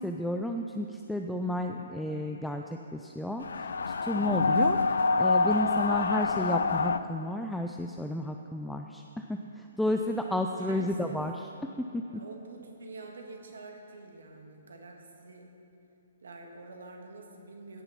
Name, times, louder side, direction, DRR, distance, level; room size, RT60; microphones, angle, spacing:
voice 1, 0.0-2.6 2.9-3.4 4.0-4.8 5.2-9.0 9.3-9.4 9.8-11.3, left 1 dB, ahead, 3 dB, 0.4 m, -31 dB
sound 1, 3.4-7.0, left 4 dB, 65° left, 0.4 m, -26 dB
voice 2, 10.6-11.2 12.1-15.5 16.2-17.8, right 3 dB, 65° right, 2 dB, 1.8 m, -46 dB
16.5 x 6.8 x 5.8 m, 2.8 s
figure-of-eight pair, 125°, 0 cm